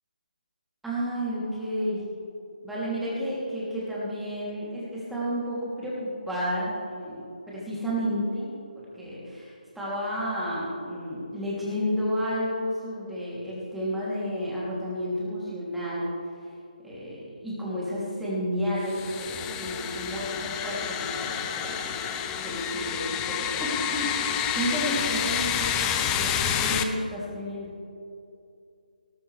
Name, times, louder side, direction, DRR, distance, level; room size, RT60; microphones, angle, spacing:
voice 1, 0.8-2.1 2.6-16.1 16.8-27.7, equal, 5° right, -9 dB, 3.1 m, -31 dB
sound 1, 18.8-26.8, left 9 dB, 15° left, 0.5 m, -29 dB
18.5 x 12.0 x 3.4 m, 2.5 s
figure-of-eight pair, 155°, 5 cm